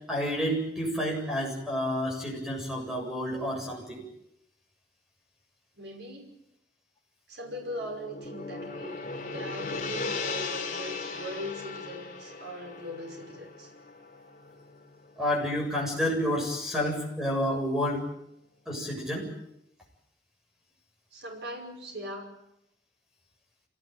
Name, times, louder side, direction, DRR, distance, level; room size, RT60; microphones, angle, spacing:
voice 1, 0.1-4.0 15.2-18.0 18.7-19.3, equal, 5° right, 0 dB, 7.6 m, -29 dB
voice 2, 5.8-6.3 7.3-13.7 21.1-22.3, equal, 70° right, 2 dB, 5.6 m, -40 dB
Gong, 7.4-15.8, left 4 dB, 45° left, 4.3 m, -38 dB
26.0 x 18.5 x 9.1 m, 0.81 s
head